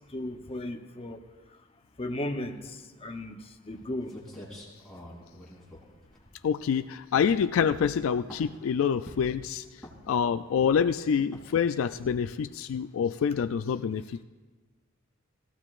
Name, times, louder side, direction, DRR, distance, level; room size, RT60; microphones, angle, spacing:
voice 1, 0.1-1.2 2.0-2.6 3.0-4.1, left 1 dB, 30° left, 4 dB, 0.8 m, -35 dB
sound 1, 3.8-3.9 4.1-6.7 7.1-7.4 7.7-8.6 9.1-9.4 9.8-10.2 10.6-10.9 11.3-11.6 11.9-12.3, left 1 dB, ahead, 3.0 m, -47 dB
voice 2, 6.4-9.6 10.1-14.2, left 7 dB, 75° left, 10 dB, 0.3 m, -26 dB
19.5 x 15.0 x 2.5 m, 1.3 s
head